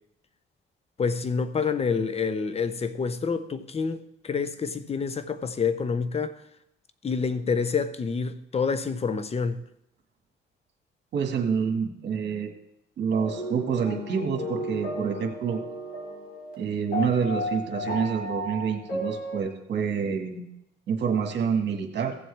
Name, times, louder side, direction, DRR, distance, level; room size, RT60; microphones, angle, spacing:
voice 1, 1.0-6.3 7.0-9.6, left 5 dB, 30° left, 0.7 m, -27 dB
voice 2, 11.1-12.5 13.0-15.6 16.6-20.4 20.9-22.2, right 6 dB, 60° right, 1.7 m, -27 dB
sound 1, 13.1-16.5 16.9-19.4, equal, 45° left, 3.9 m, -34 dB
15.5 x 7.6 x 3.3 m
cardioid pair, 90°, 20 cm